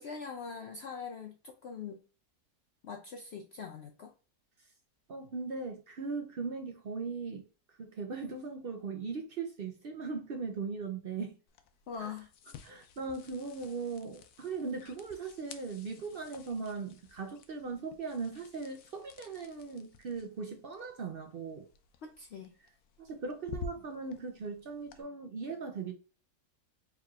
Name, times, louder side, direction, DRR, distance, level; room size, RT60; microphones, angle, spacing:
voice 1, 0.0-2.0 2.8-4.1 11.9-12.3 22.0-22.5, left 6 dB, 65° left, 0.7 m, -42 dB
voice 2, 5.1-7.4 7.8-11.4 12.0-12.1 12.6-21.7 23.0-25.9, right 4 dB, 60° right, 0.6 m, -39 dB
sound 1, 11.5-25.0, left 6 dB, 85° left, 1.1 m, -51 dB
4.5 x 3.6 x 2.4 m
omnidirectional pair, 1.6 m